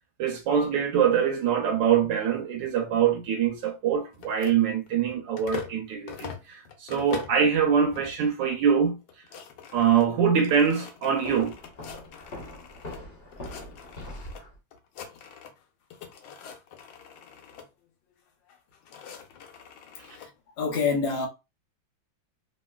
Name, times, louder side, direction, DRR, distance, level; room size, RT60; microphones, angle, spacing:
voice 1, 0.2-9.0 9.7-11.5, right 7 dB, 80° right, 1.2 m, -24 dB
sound 1, 4.1-5.8 6.1-7.5 7.9-8.4 8.7-8.8 9.0-13.0 13.3-14.4 14.7-15.6 15.9-17.7 18.5-20.3, left 7 dB, 85° left, 1.4 m, -44 dB
Walk footsteps, 11.2-14.6, left 1 dB, 40° left, 1.0 m, -42 dB
voice 2, 20.6-21.3, left 4 dB, 55° left, 0.7 m, -25 dB
3.0 x 2.8 x 2.2 m
omnidirectional pair, 2.0 m